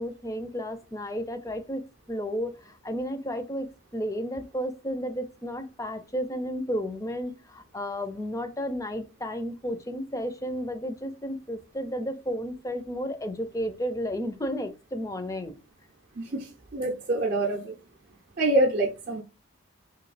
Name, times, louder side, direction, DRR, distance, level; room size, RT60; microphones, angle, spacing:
voice 1, 0.0-15.6, equal, 15° left, 0.5 m, -33 dB
voice 2, 16.2-17.8 18.4-19.2, right 1 dB, 45° right, 0.6 m, -26 dB
3.1 x 2.7 x 4.0 m
head